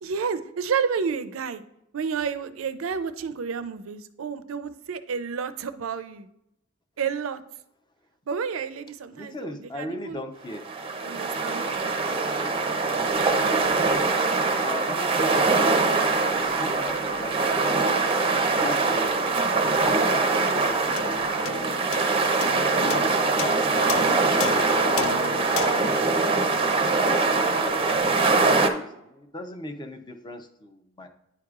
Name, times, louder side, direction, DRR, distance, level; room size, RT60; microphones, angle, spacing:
voice 1, 0.0-1.6 1.9-6.3 7.0-7.4 8.3-10.2 11.0-11.9 13.3-13.6 22.8-23.1, right 6 dB, 85° right, 12 dB, 0.4 m, -30 dB
voice 2, 9.1-10.6 13.1-13.6 14.3-17.8 18.4-19.3 19.9-22.3 22.7-23.1 23.4-25.5 26.2-31.1, left 1 dB, 20° left, 7 dB, 0.5 m, -39 dB
sound 1, 10.5-28.7, right 3 dB, 30° right, 0.5 m, -23 dB
sound 2, 21.0-27.6, left 8 dB, 75° left, 0.3 m, -36 dB
9.7 x 4.7 x 2.4 m, 0.81 s
head